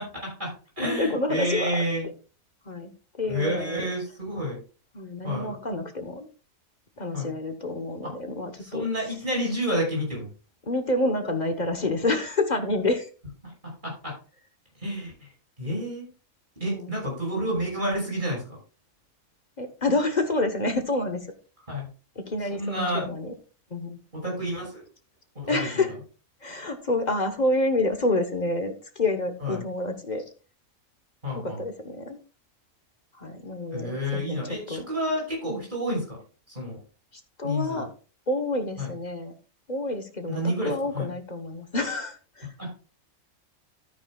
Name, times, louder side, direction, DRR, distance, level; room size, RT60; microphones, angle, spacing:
voice 1, 0.0-2.1 3.3-4.6 5.2-5.5 7.1-7.3 8.0-8.1 8.6-10.3 13.6-14.2 14.8-15.3 15.6-16.1 16.6-18.4 21.7-21.8 22.5-23.1 24.1-24.8 25.3-25.6 29.4-29.6 31.2-31.6 33.7-36.2 36.5-36.8 37.4-37.9 38.8-38.9 40.3-41.1 42.6-42.7, equal, 35° right, -2 dB, 5.9 m, -29 dB
voice 2, 0.8-1.8 2.6-2.9 3.2-3.9 4.9-6.3 7.0-8.9 10.6-13.1 16.7-16.9 19.6-21.3 22.1-23.3 23.7-24.0 25.5-26.0 26.4-30.2 31.3-32.2 33.1-34.8 35.5-35.7 37.1-37.9 38.3-39.3 39.7-42.5, left 2 dB, 35° left, 7 dB, 1.1 m, -28 dB
13.0 x 9.3 x 2.3 m, 0.36 s
omnidirectional pair, 1.5 m